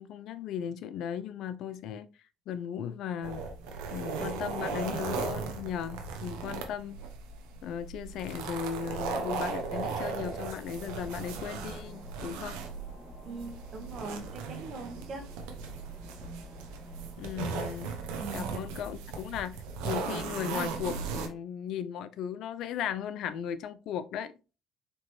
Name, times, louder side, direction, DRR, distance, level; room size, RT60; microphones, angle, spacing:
voice 1, 0.0-2.1 2.5-3.4 3.9-7.0 7.6-12.6 17.2-18.0 18.3-19.6 19.8-24.3, left 8 dB, 70° left, 0.4 m, -36 dB
sound 1, 3.2-21.3, right 5 dB, 85° right, 0.7 m, -37 dB
sound 2, 8.8-18.3, right 1 dB, 15° left, 1.6 m, -52 dB
voice 2, 13.2-15.3 18.2-18.6, right 4 dB, 50° right, 1.2 m, -41 dB
4.3 x 3.0 x 3.1 m
supercardioid pair, 65°, 0 cm